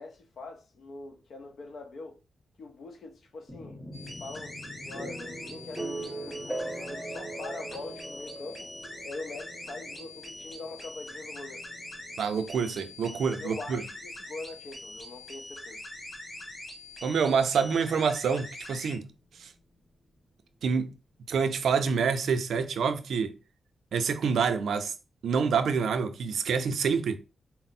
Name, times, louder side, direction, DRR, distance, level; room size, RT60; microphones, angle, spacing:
voice 1, 0.0-2.2 2.6-3.8 4.2-4.6 4.9-8.7 9.0-11.7 13.4-15.8, left 3 dB, 75° left, 0.7 m, -43 dB
sound 1, 3.5-17.3, right 1 dB, ahead, 0.8 m, -42 dB
sound 2, 3.9-18.9, left 1 dB, 25° left, 1.7 m, -43 dB
voice 2, 12.2-13.8 17.0-19.5 20.6-21.0 21.3-23.3 23.9-24.9 25.2-27.2, right 6 dB, 90° right, 0.5 m, -27 dB
4.2 x 2.0 x 4.1 m
wide cardioid pair, 110°, 0 cm